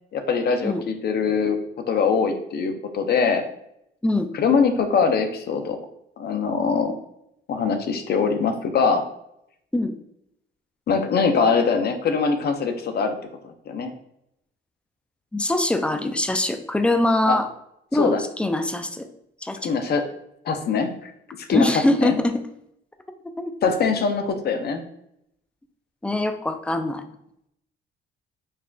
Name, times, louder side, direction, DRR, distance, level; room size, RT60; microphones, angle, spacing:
voice 1, 0.1-1.6 1.9-3.4 4.3-5.8 6.2-6.9 7.5-9.0 10.9-13.2 13.4-13.9 17.3-17.4 18.0-18.2 19.6-20.0 20.5-21.1 21.5-21.7 22.0-22.2 23.6-24.8, left 5 dB, 55° left, 7 dB, 0.6 m, -22 dB
voice 2, 15.3-17.5 17.9-19.1 19.4-19.7 21.5-22.4 23.4-23.5 26.0-27.0, left 1 dB, 5° left, 7 dB, 0.3 m, -23 dB
5.5 x 2.4 x 2.3 m, 0.78 s
cardioid pair, 90°, 20 cm